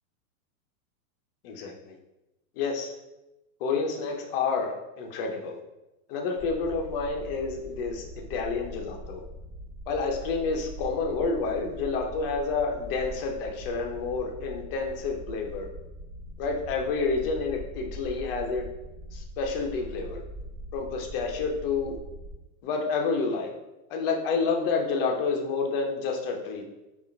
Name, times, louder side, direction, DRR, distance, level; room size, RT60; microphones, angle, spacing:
voice 1, 1.4-2.0 2.6-2.9 3.6-5.6 6.1-9.2 9.9-15.7 16.4-18.6 19.1-20.2 20.7-22.0 22.6-23.5 23.9-26.6, left 4 dB, 40° left, 1 dB, 0.6 m, -29 dB
sound 1, 6.4-22.3, right 1 dB, 50° right, 1.5 m, -42 dB
4.6 x 2.5 x 3.1 m, 0.98 s
supercardioid pair, 165°, 43 cm